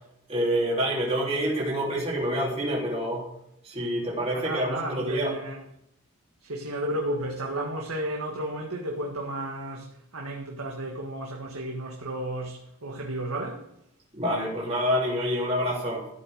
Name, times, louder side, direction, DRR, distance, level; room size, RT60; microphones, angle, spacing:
voice 1, 0.3-3.2 3.6-5.3 14.1-16.1, equal, 30° right, 3.3 m, -27 dB
voice 2, 4.3-5.6 6.4-13.7, right 1 dB, 85° right, 1.8 m, -33 dB
13.5 x 7.2 x 6.5 m
head